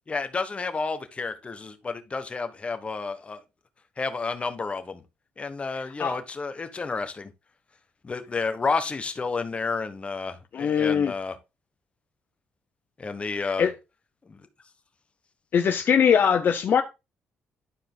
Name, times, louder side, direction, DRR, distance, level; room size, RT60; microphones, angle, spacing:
voice 1, 0.1-3.4 4.0-5.0 5.4-7.3 8.0-11.4 13.0-13.7 14.3-14.4, left 4 dB, 30° left, 1.3 m, -31 dB
voice 2, 5.7-6.2 10.5-11.1 13.3-13.7 15.5-16.8, left 7 dB, 55° left, 0.7 m, -22 dB
11.5 x 4.7 x 3.9 m
cardioid pair, 90°, 4 cm